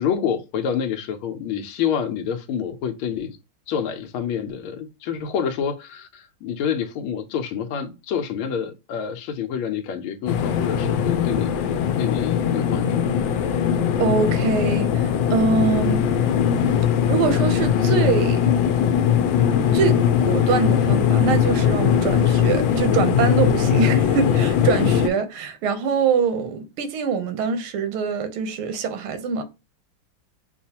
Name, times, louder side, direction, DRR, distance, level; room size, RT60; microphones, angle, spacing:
voice 1, 0.0-3.4 3.7-11.5 12.0-13.1, left 8 dB, 90° left, 1.6 m, -27 dB
sound 1, 10.3-25.1, left 8 dB, 75° left, 1.3 m, -20 dB
voice 2, 14.0-16.1 17.1-18.4 19.7-29.4, right 6 dB, 90° right, 1.6 m, -24 dB
6.9 x 2.4 x 2.8 m
omnidirectional pair, 2.3 m